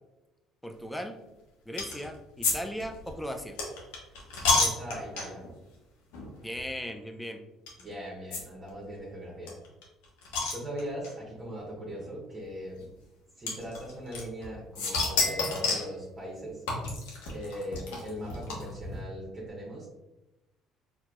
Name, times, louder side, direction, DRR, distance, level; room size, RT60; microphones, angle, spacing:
voice 1, 0.6-1.2 1.7-3.6 6.4-7.4, equal, 5° left, 5 dB, 0.5 m, -37 dB
sound 1, 1.8-2.1 2.4-5.5 6.1-6.3 6.5-6.6 7.7-7.8 8.3-8.4 8.7-8.8 9.0-9.1 9.5-11.1 12.0-12.1 13.5-14.5 14.8-15.9 16.7-18.9, left 3 dB, 90° left, 1.0 m, -29 dB
voice 2, 4.5-5.4 7.8-9.6 10.5-12.9 13.4-16.6 17.3-19.9, equal, 30° right, -4 dB, 1.2 m, -39 dB
4.3 x 2.9 x 2.5 m, 1.0 s
supercardioid pair, 80°, 0 cm